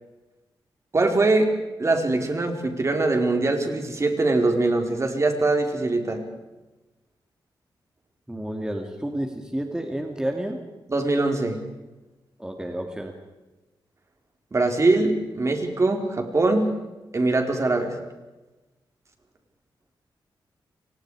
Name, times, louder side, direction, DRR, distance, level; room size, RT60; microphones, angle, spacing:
voice 1, 0.9-1.5 1.8-6.2 10.9-11.6 14.5-16.7 17.1-17.9, right 2 dB, 35° right, 4 dB, 4.4 m, -22 dB
voice 2, 8.3-10.6 12.4-13.1, right 1 dB, 10° right, 3 dB, 2.6 m, -30 dB
29.5 x 25.0 x 4.9 m, 1.1 s
wide cardioid pair, 100°, 9 cm